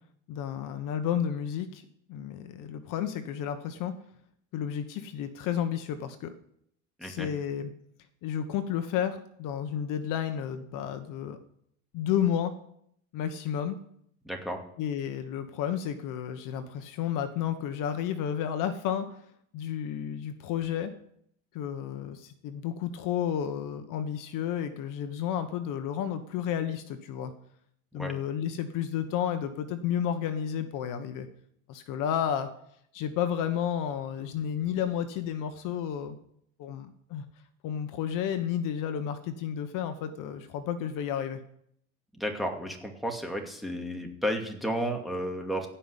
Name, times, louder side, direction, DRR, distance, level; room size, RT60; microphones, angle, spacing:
voice 1, 0.3-1.8 2.1-3.9 4.5-6.3 7.0-7.7 8.2-11.4 11.9-12.5 13.1-13.8 14.8-19.1 19.5-20.9 21.5-27.3 27.9-31.3 31.7-32.5 32.9-36.1 36.6-37.2 37.6-41.4, left 9 dB, 55° left, 9 dB, 1.2 m, -31 dB
voice 2, 14.2-14.6 27.9-28.1 42.2-45.7, equal, ahead, 2 dB, 2.4 m, -32 dB
16.0 x 5.7 x 8.1 m, 0.71 s
supercardioid pair, 105°, 38 cm